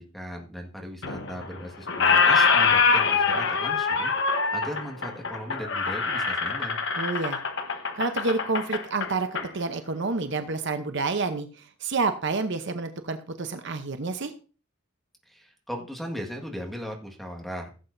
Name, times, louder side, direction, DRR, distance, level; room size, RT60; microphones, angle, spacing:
voice 1, 0.0-4.1 4.5-6.8 15.3-17.8, equal, ahead, 2 dB, 1.7 m, -37 dB
Squeak, 1.0-1.6 1.9-9.5, left 5 dB, 55° left, 1.1 m, -24 dB
voice 2, 7.0-7.4 7.9-9.3 9.5-14.3, right 3 dB, 55° right, 8 dB, 0.8 m, -29 dB
16.0 x 7.8 x 2.6 m, 0.37 s
head